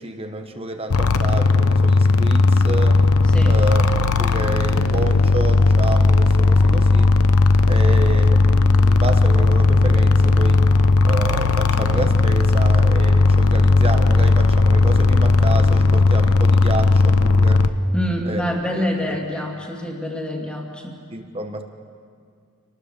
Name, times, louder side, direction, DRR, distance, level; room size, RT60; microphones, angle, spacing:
voice 1, 0.0-3.0 3.4-7.2 7.7-10.7 11.0-17.6 18.2-18.4 18.7-19.2 21.1-21.6, right 2 dB, 25° right, 6 dB, 1.2 m, -29 dB
sound 1, 0.9-17.7, left 3 dB, 85° left, 0.9 m, -16 dB
voice 2, 17.9-21.0, left 1 dB, 5° left, 0 dB, 2.4 m, -26 dB
27.0 x 19.0 x 6.8 m, 2.2 s
head